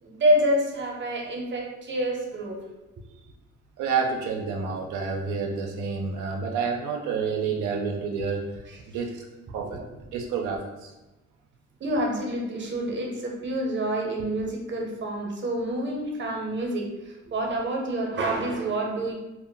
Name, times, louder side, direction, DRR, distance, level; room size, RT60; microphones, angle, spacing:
voice 1, 0.0-2.6 8.7-8.8 9.7-9.8 11.8-19.1, right 1 dB, 40° right, 0 dB, 0.7 m, -27 dB
voice 2, 3.8-9.2 9.5-9.8 10.1-10.9, right 5 dB, 80° right, 2 dB, 0.5 m, -29 dB
2.1 x 2.1 x 3.7 m, 1.1 s
cardioid pair, 90°, 30 cm